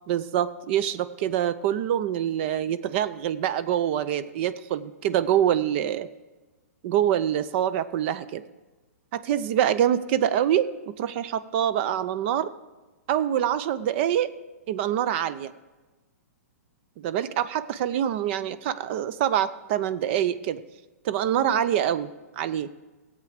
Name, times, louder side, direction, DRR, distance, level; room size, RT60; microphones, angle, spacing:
voice 1, 0.1-6.1 6.8-8.4 9.1-12.5 13.1-14.3 14.7-15.5 17.0-20.6 21.0-22.1 22.4-22.7, right 10 dB, 45° right, 14 dB, 0.5 m, -25 dB
15.5 x 8.1 x 5.0 m, 1.2 s
hypercardioid pair, 125°, 9 cm